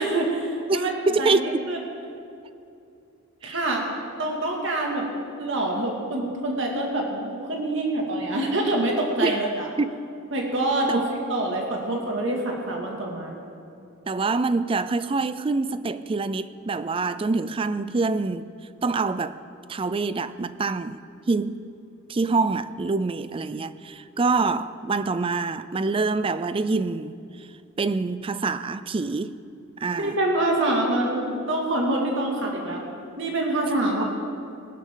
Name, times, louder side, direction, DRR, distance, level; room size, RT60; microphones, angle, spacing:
voice 1, 0.0-0.9 1.2-1.8 3.4-3.8 4.2-5.1 5.4-9.7 10.3-13.4 29.9-32.8 33.2-34.0, right 1 dB, 65° right, 2.3 m, -26 dB
voice 2, 0.7-1.6 3.4-3.6 9.2-9.3 9.8-10.0 10.9-11.0 14.1-18.5 18.8-19.4 19.7-21.6 22.1-27.2 27.8-29.4 29.8-30.2 34.0-34.1, right 3 dB, 25° right, 0.4 m, -25 dB
20.5 x 11.5 x 3.8 m
head